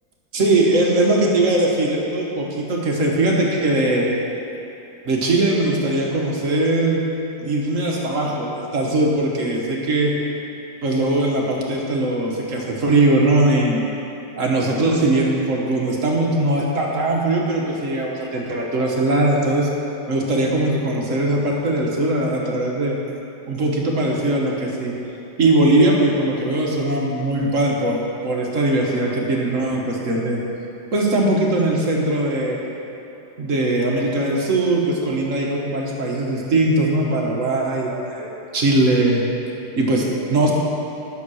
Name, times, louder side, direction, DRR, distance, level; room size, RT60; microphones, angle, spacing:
voice 1, 0.3-4.1 5.0-7.1 7.4-10.1 10.8-13.8 14.4-19.7 20.1-23.0 23.5-24.9 25.4-30.4 30.9-32.6 33.4-39.2 39.8-40.5, right 2 dB, 50° right, -2 dB, 1.5 m, -20 dB
10.5 x 6.6 x 6.3 m, 2.9 s
omnidirectional pair, 1.8 m